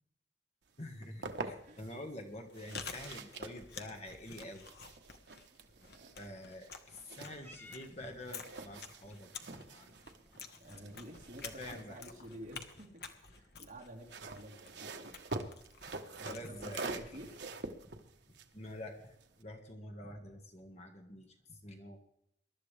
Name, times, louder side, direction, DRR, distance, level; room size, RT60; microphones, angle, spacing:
voice 1, 0.8-4.7 6.2-9.9 11.4-12.0 16.2-17.0 18.5-22.0, left 1 dB, 40° left, 4 dB, 1.7 m, -47 dB
sound 1, 0.8-2.0 2.5-7.9 8.2-12.9 13.9-19.4, right 3 dB, 75° right, 1.2 m, -46 dB
Chewing mastication, 2.4-17.4, left 5 dB, 60° left, 1.3 m, -51 dB
voice 2, 5.8-6.1 10.6-15.1 16.2-17.4, right 1 dB, 45° right, -3 dB, 3.7 m, -51 dB
Purr / Meow, 7.4-13.9, left 2 dB, 10° left, 1.1 m, -62 dB
22.5 x 12.0 x 3.4 m, 0.77 s
head